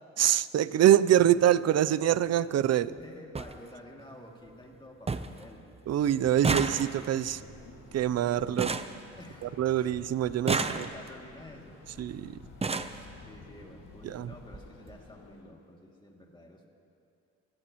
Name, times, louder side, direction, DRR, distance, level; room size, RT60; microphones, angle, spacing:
voice 1, 0.2-3.0 5.9-7.4 7.9-8.8 9.4-10.8 12.0-12.4 14.0-14.3, right 11 dB, 55° right, 17 dB, 0.6 m, -25 dB
sound 1, 1.2-1.4 2.6-2.7 3.0-3.1 3.3-3.5 4.0-4.5 4.7-4.8 5.1-5.4 5.7-9.7 10.3-11.3 12.1-12.2 12.4-13.0 14.0-14.1 14.4-14.6 14.9-15.0, right 4 dB, 20° right, 0.7 m, -32 dB
voice 2, 3.0-5.7 9.2-10.0 10.4-11.8 12.9-16.7, left 1 dB, 15° left, 0 dB, 2.6 m, -50 dB
sound 2, 6.6-15.4, left 4 dB, 85° left, 2.6 m, -52 dB
27.0 x 17.0 x 3.1 m, 2.4 s
cardioid pair, 90°, 30 cm